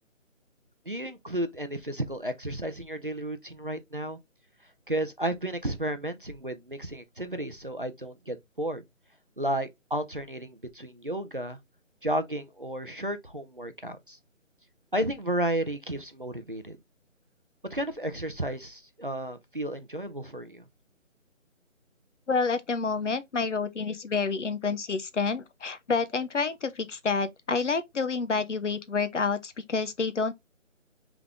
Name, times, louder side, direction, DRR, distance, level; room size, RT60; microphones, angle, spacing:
voice 1, 0.9-4.2 4.9-8.8 9.4-11.6 12.0-14.2 14.9-16.8 17.7-20.6, right 1 dB, 40° right, 0.5 m, -32 dB
voice 2, 22.3-30.3, left 4 dB, 65° left, 0.8 m, -28 dB
3.6 x 3.5 x 3.5 m
figure-of-eight pair, 175°, 40 cm